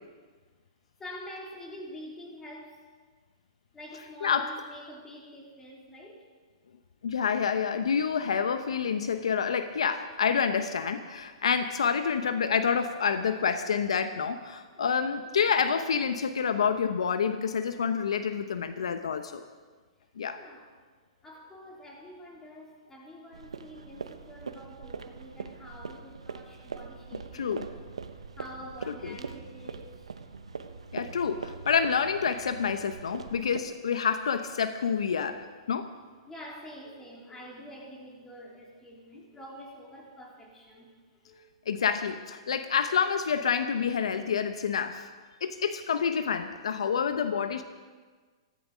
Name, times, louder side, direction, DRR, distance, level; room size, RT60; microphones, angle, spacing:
voice 1, 1.0-2.8 3.7-6.3 9.0-9.3 14.7-15.0 20.3-20.7 21.2-30.1 30.6-30.7 36.2-40.9 41.2-41.4, equal, 15° left, -2 dB, 4.0 m, -47 dB
voice 2, 7.0-19.4 20.2-20.4 27.3-27.7 28.9-29.2 30.9-35.9 41.7-45.1 45.4-47.6, left 6 dB, 80° left, 10 dB, 0.9 m, -28 dB
sound 1, 23.3-33.6, right 5 dB, 90° right, 1.0 m, -42 dB
16.0 x 14.5 x 5.1 m, 1.5 s
hypercardioid pair, 125°, 3 cm